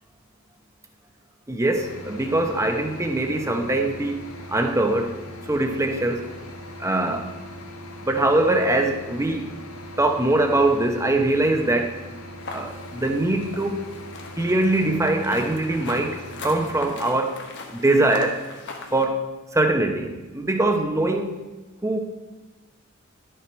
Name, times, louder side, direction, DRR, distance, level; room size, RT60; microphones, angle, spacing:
voice 1, 1.5-5.1 5.5-6.2 6.8-7.3 8.0-9.5 10.0-11.9 12.5-13.9 14.4-17.4 17.7-18.4 18.9-19.2 19.5-21.4 21.8-22.0, right 2 dB, 15° right, 4 dB, 0.9 m, -22 dB
sound 1, 1.8-16.9, left 1 dB, 90° left, 1.4 m, -40 dB
sound 2, 12.4-19.1, left 3 dB, 55° left, 1.2 m, -40 dB
11.0 x 6.9 x 4.4 m, 1.2 s
head